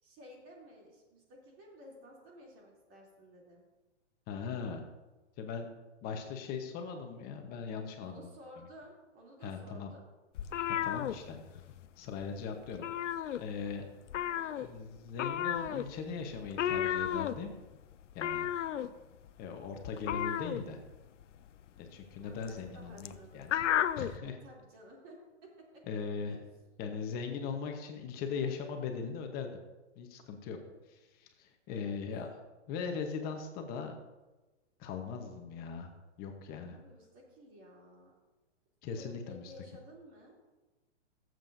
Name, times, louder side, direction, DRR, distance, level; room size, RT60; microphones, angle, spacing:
voice 1, 0.0-3.6 8.0-10.1 14.2-14.7 22.2-23.5 24.2-25.2 25.4-26.4 31.7-32.0 36.7-38.1 39.0-40.3, equal, 35° right, -2 dB, 3.1 m, -54 dB
voice 2, 4.3-4.8 5.4-5.7 6.0-8.3 8.6-8.7 9.4-9.9 10.7-11.6 12.0-12.8 13.4-13.8 14.6-17.5 18.1-18.5 19.4-20.8 21.8-23.7 24.0-24.3 25.9-26.4 26.8-29.5 30.0-30.6 30.9-32.3 32.7-34.0 34.8-35.9 36.2-36.8 38.8-39.5, left 5 dB, 25° left, 4 dB, 1.0 m, -39 dB
sound 1, 10.4-11.9 12.1-12.4 12.7-13.8 14.1-24.2, left 10 dB, 85° left, 0.6 m, -34 dB
17.5 x 7.7 x 2.7 m, 1.2 s
hypercardioid pair, 140°, 35 cm